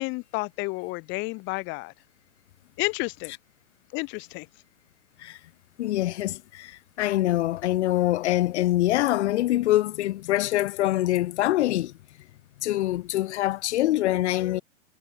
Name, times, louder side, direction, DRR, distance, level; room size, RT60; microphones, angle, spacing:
voice 1, 0.0-1.9 2.8-3.3 3.9-4.5, left 26 dB, 25° left, 1.0 m, -31 dB
voice 2, 5.8-11.9 12.6-14.6, left 15 dB, 55° left, 0.9 m, -24 dB
hypercardioid pair, 135°, 42 cm